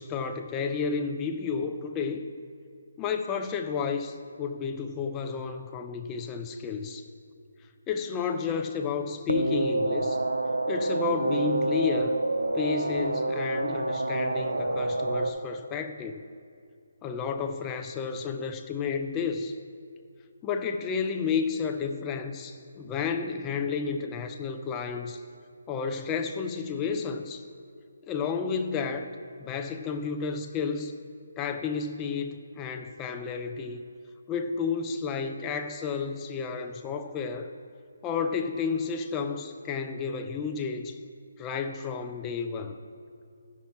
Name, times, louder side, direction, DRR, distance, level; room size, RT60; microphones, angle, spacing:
voice 1, 0.0-2.2 3.0-7.0 7.9-10.2 10.7-12.2 12.5-16.2 17.0-19.5 20.4-25.2 25.7-27.4 28.1-29.1 29.4-30.9 31.4-33.9 34.3-37.5 38.0-41.0 41.4-42.8, left 5 dB, 15° left, 6 dB, 0.5 m, -31 dB
sound 1, 9.3-15.3, right 2 dB, 90° right, 0.7 m, -28 dB
14.0 x 6.0 x 4.3 m, 2.4 s
figure-of-eight pair, 155°, 0 cm